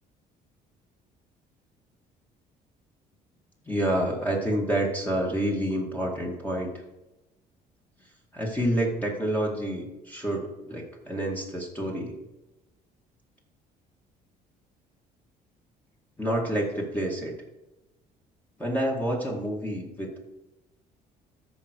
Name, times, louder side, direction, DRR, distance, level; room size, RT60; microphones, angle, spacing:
voice 1, 3.7-6.7 8.3-12.2 16.2-17.3 18.6-20.2, right 1 dB, 10° left, -2 dB, 2.1 m, -28 dB
13.5 x 5.0 x 4.7 m, 1.0 s
cardioid pair, 110°, 17 cm